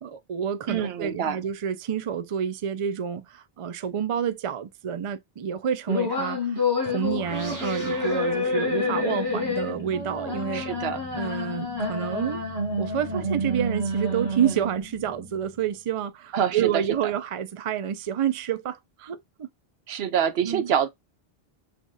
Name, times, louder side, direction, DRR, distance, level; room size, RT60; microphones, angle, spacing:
voice 1, 0.0-10.7 11.2-12.4 12.8-19.5 20.4-20.7, right 8 dB, 50° right, 0.4 m, -29 dB
voice 2, 0.7-1.4 10.5-11.0 16.3-16.8 19.9-20.9, right 8 dB, 75° right, 0.8 m, -26 dB
sound 1, 5.9-14.9, left 2 dB, 20° left, 3.7 m, -28 dB
sound 2, 7.0-15.9, equal, 20° right, 0.9 m, -41 dB
6.3 x 2.4 x 2.6 m
omnidirectional pair, 1.0 m